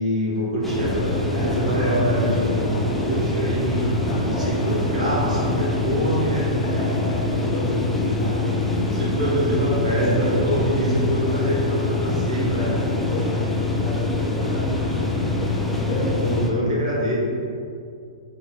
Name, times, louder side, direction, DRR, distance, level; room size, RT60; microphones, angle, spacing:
voice 1, 0.0-3.9 4.4-6.5 8.8-12.8 16.2-17.1, equal, 85° right, -5 dB, 1.3 m, -25 dB
sound 1, 0.6-16.5, left 2 dB, 5° left, 0.4 m, -24 dB
voice 2, 1.6-2.1 4.1-5.0 6.6-8.5 9.8-10.5 11.9-16.1, equal, 45° left, -6 dB, 1.4 m, -32 dB
3.5 x 2.6 x 3.8 m, 2.4 s
hypercardioid pair, 135°, 4 cm